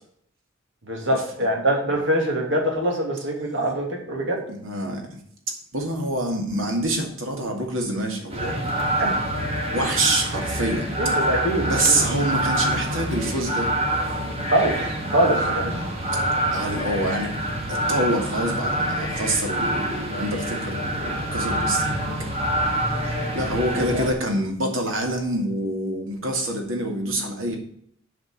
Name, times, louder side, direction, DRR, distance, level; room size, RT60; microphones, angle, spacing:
voice 1, 0.9-4.4 9.0-9.1 11.0-12.0 14.5-15.8 23.8-24.0, right 1 dB, 65° right, 0 dB, 2.7 m, -24 dB
voice 2, 4.5-5.2 5.7-8.6 9.7-10.9 11.7-13.7 15.1-15.5 16.5-17.3 17.7-22.0 23.3-27.6, right 1 dB, 85° right, 2 dB, 2.3 m, -26 dB
sound 1, 8.3-24.1, right 1 dB, 30° right, 1.8 m, -26 dB
8.0 x 5.2 x 6.3 m, 0.66 s
head